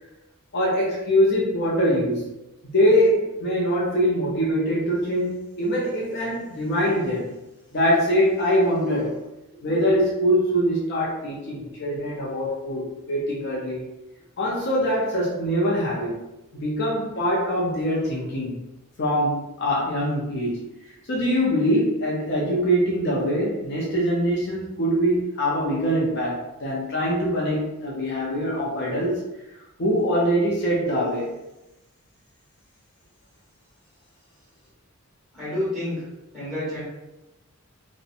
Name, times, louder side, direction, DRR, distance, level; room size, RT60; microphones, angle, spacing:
voice 1, 0.5-2.3 2.7-7.4 7.7-9.2 9.6-13.8 14.4-16.2 16.5-18.6 19.0-20.6 21.1-29.2 29.8-31.3, equal, 50° left, -4 dB, 0.5 m, -23 dB
voice 2, 35.3-36.0 36.3-36.8, left 1 dB, ahead, -10 dB, 1.3 m, -29 dB
2.7 x 2.1 x 2.5 m, 0.96 s
head